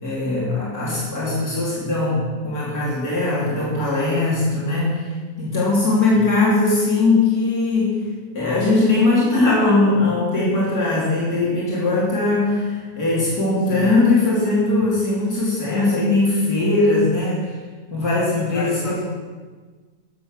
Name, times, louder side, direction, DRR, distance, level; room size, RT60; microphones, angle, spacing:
voice 1, 0.0-5.1 5.4-8.1 8.3-17.5 17.9-19.0, left 2 dB, 80° left, -6 dB, 3.4 m, -20 dB
voice 2, 18.3-19.0, left 3 dB, 60° left, -2 dB, 2.0 m, -32 dB
14.0 x 6.9 x 6.2 m, 1.4 s
omnidirectional pair, 1.6 m